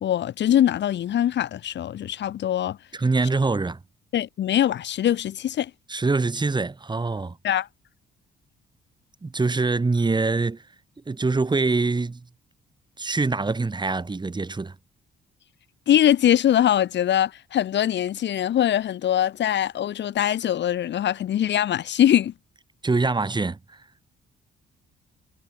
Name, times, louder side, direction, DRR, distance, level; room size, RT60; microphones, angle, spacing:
voice 1, 0.0-2.8 4.1-5.7 7.4-7.7 15.9-22.3, left 11 dB, 65° left, 1.2 m, -22 dB
voice 2, 2.9-3.8 5.9-7.4 9.2-10.6 11.1-12.2 13.0-14.7 22.8-23.6, right 3 dB, 20° right, 2.5 m, -24 dB
cardioid pair, 90°, 20 cm